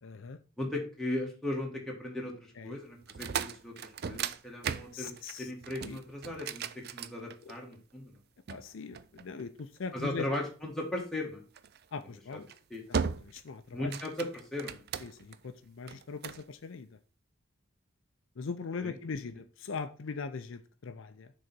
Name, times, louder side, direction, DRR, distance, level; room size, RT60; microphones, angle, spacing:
voice 1, 0.0-0.4 2.6-2.8 4.9-5.5 5.8-6.0 7.4-7.5 8.5-10.3 11.9-12.5 12.9-13.9 15.0-17.0 18.4-21.3, left 4 dB, 60° left, 9 dB, 0.5 m, -40 dB
voice 2, 0.6-5.1 5.4-8.2 9.9-11.4 12.3-12.4 12.7-12.8 13.7-14.8 18.8-18.9, left 1 dB, ahead, -2 dB, 1.7 m, -37 dB
sound 1, 3.0-7.7 8.5-9.8 11.5-11.8 12.3-12.6 12.9-13.5 13.8-15.4 15.9-16.4, right 7 dB, 50° right, 0.4 m, -37 dB
6.5 x 4.0 x 6.0 m, 0.37 s
head